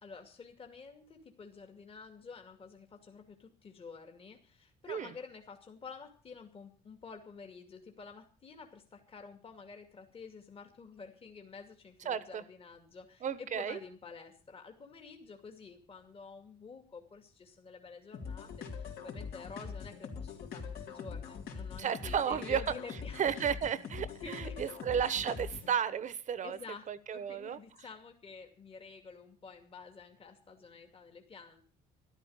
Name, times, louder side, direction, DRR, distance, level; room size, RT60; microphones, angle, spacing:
voice 1, 0.0-23.4 24.2-24.6 26.4-26.9 27.1-31.6, left 5 dB, 35° left, 4 dB, 2.5 m, -50 dB
voice 2, 12.0-12.4 13.2-13.8 21.8-22.7 23.2-26.6 26.9-27.6, right 8 dB, 45° right, 15 dB, 1.2 m, -33 dB
sound 1, 18.1-25.7, left 6 dB, 65° left, 3.9 m, -43 dB
13.5 x 12.0 x 6.4 m, 0.40 s
cardioid pair, 110°, 17 cm